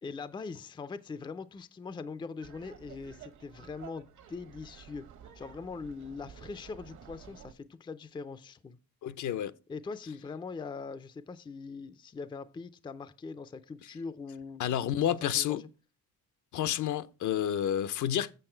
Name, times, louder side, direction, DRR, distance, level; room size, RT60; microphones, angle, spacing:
voice 1, 0.0-5.1 5.4-8.8 9.7-14.7 15.2-15.7, left 4 dB, 15° left, 0.4 m, -42 dB
Laughter, 2.4-7.5, right 8 dB, 60° right, 1.1 m, -52 dB
voice 2, 9.0-9.5 14.6-15.6 16.5-18.3, left 10 dB, 65° left, 0.7 m, -30 dB
7.8 x 6.8 x 4.4 m
cardioid pair, 125°, 33 cm